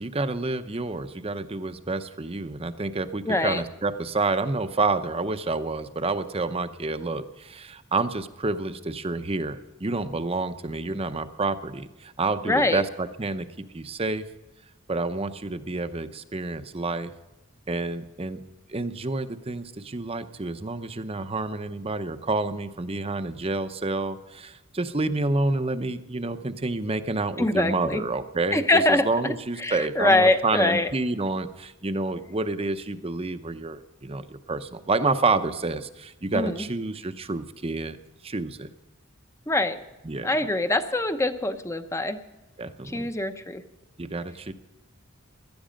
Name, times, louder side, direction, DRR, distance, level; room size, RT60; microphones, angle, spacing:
voice 1, 0.0-13.5 13.7-14.3 14.9-17.1 17.7-18.4 18.7-38.0 38.2-38.7 40.0-40.3 42.6-43.1 44.0-44.5, right 3 dB, 30° right, 10 dB, 0.8 m, -29 dB
voice 2, 3.3-3.6 12.5-12.8 27.4-28.0 28.5-30.9 36.3-36.7 39.5-39.8 40.2-42.2 42.8-43.6, left 2 dB, 15° left, 9 dB, 0.8 m, -24 dB
17.5 x 12.5 x 5.2 m, 1.0 s
head